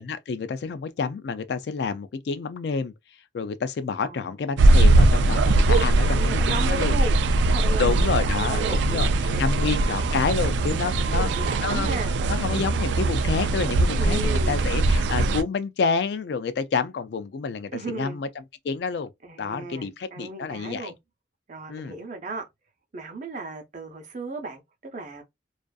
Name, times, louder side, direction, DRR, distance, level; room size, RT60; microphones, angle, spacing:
voice 1, 0.0-2.9 3.3-7.0 7.8-9.1 9.4-12.0 12.3-18.3 18.6-19.1 19.4-20.9 21.7-21.9, left 5 dB, 65° left, 0.3 m, -28 dB
voice 2, 4.0-4.4 6.0-7.2 7.5-9.5 11.0-12.2 14.0-14.7 17.7-18.2 19.2-21.0 21.5-22.4 22.9-25.2, right 3 dB, 45° right, 0.6 m, -35 dB
sound 1, 4.6-15.4, right 2 dB, 80° right, 0.3 m, -21 dB
2.4 x 2.4 x 2.3 m
head